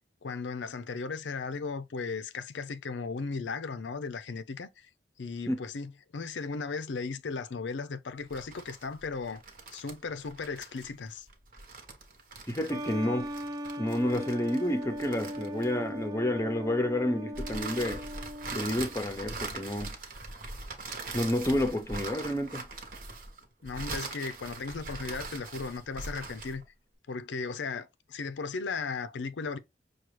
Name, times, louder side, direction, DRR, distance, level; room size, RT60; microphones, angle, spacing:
voice 1, 0.2-4.9 5.2-9.4 9.7-11.3 23.6-26.6 27.1-29.6, left 4 dB, 85° left, 0.5 m, -36 dB
sound 1, 8.2-16.0 17.3-26.6, right 3 dB, 50° right, 1.0 m, -41 dB
voice 2, 12.5-13.3 13.8-18.0 18.5-20.0 21.1-22.6, left 1 dB, 15° left, 0.6 m, -30 dB
sound 2, 12.7-19.0, equal, 20° right, 0.3 m, -38 dB
5.9 x 2.3 x 3.1 m
head